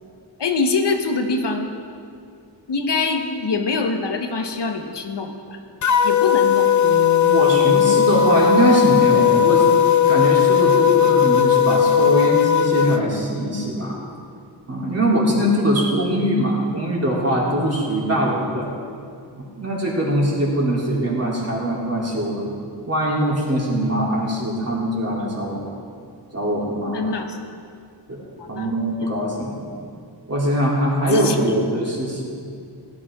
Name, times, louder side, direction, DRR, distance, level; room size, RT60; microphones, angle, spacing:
voice 1, 0.4-1.7 2.7-5.6 6.0-6.7 26.9-27.4 28.4-28.7 29.0-29.1 31.1-31.6, left 4 dB, 70° left, 5 dB, 1.2 m, -24 dB
sound 1, 5.8-13.0, left 9 dB, 45° left, 0.5 m, -16 dB
voice 2, 6.8-9.6 10.1-13.9 14.7-18.7 19.3-22.5 22.9-25.7 26.3-27.1 28.1-29.7 30.3-32.3, right 1 dB, 35° right, -5 dB, 3.2 m, -22 dB
16.5 x 12.0 x 3.7 m, 2.3 s
wide cardioid pair, 105°, 43 cm